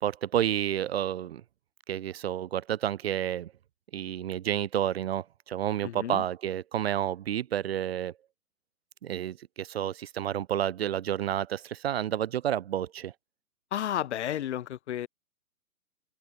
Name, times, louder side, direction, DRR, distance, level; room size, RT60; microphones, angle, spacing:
voice 1, 0.0-1.4 1.9-3.5 3.9-8.1 9.0-13.1, right 11 dB, 45° right, 0.5 m, -30 dB
voice 2, 5.8-6.2 13.7-15.1, left 11 dB, 50° left, 1.8 m, -32 dB
hypercardioid pair, 135°, 43 cm